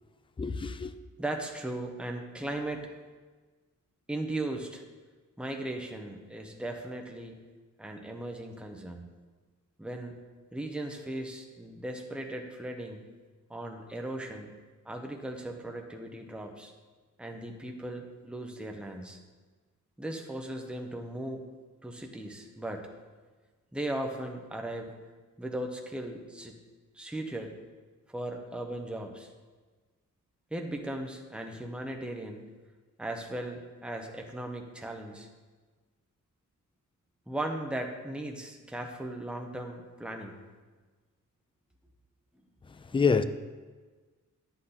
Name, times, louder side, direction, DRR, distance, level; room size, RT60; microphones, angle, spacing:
voice 1, 0.4-0.9 42.7-43.2, left 5 dB, 15° left, 0.4 m, -27 dB
voice 2, 1.2-2.9 4.1-4.8 5.4-7.4 7.8-9.1 9.8-10.2 10.5-13.1 13.5-14.6 14.8-16.7 17.2-19.2 20.0-21.4 21.8-22.9 23.7-24.9 25.4-26.5 26.9-27.6 28.1-29.3 30.5-32.5 33.0-35.3 37.3-40.4, right 1 dB, 5° right, 0.9 m, -37 dB
10.0 x 7.9 x 4.1 m
wide cardioid pair, 145°, 31 cm